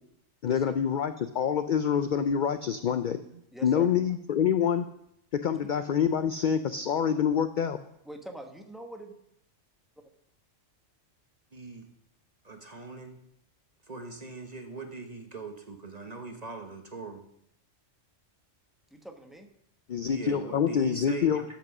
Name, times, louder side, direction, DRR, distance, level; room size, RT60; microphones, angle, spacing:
voice 1, 0.4-3.2 3.6-4.8 5.4-7.8 19.9-21.4, left 8 dB, 65° left, 10 dB, 0.4 m, -26 dB
voice 2, 3.5-3.9 8.1-9.1 18.9-19.5, right 1 dB, ahead, 3 dB, 1.0 m, -43 dB
voice 3, 11.5-11.9 12.4-13.2 13.9-17.2 20.1-21.4, right 3 dB, 35° right, 5 dB, 0.9 m, -41 dB
13.0 x 5.9 x 6.0 m, 0.78 s
omnidirectional pair, 1.3 m